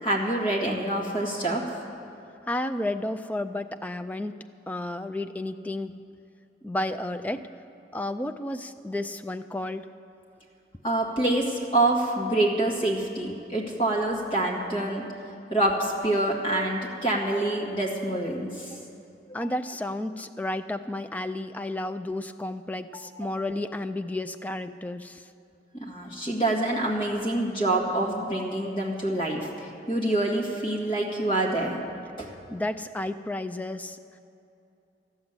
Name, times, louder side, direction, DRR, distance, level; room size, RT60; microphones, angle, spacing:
voice 1, 0.0-1.6 10.8-15.0 15.5-18.8 22.9-23.3 25.8-31.8 32.2-32.3, right 1 dB, 30° left, -2 dB, 1.8 m, -26 dB
voice 2, 2.5-4.4 4.7-6.0 6.6-7.5 7.9-9.9 19.3-25.3 32.5-34.0, left 1 dB, 10° left, 8 dB, 0.3 m, -32 dB
13.5 x 7.3 x 9.6 m, 2.7 s
head